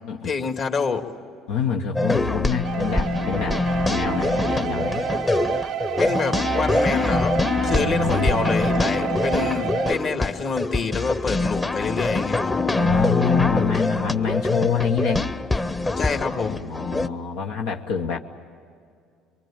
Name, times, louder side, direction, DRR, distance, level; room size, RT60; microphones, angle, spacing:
voice 1, 0.2-1.0 6.0-12.5 16.0-16.6, left 5 dB, 50° left, 5 dB, 2.2 m, -27 dB
voice 2, 1.5-3.6 3.9-5.1 7.7-8.4 12.8-15.2 16.2-18.2, left 7 dB, 85° left, 1 dB, 1.1 m, -26 dB
sound 1, 2.0-17.1, left 2 dB, 20° left, 0.9 m, -24 dB
sound 2, 2.6-9.9, right 11 dB, 65° right, 0.6 m, -30 dB
24.0 x 23.5 x 8.8 m, 2.3 s
supercardioid pair, 90°, 0 cm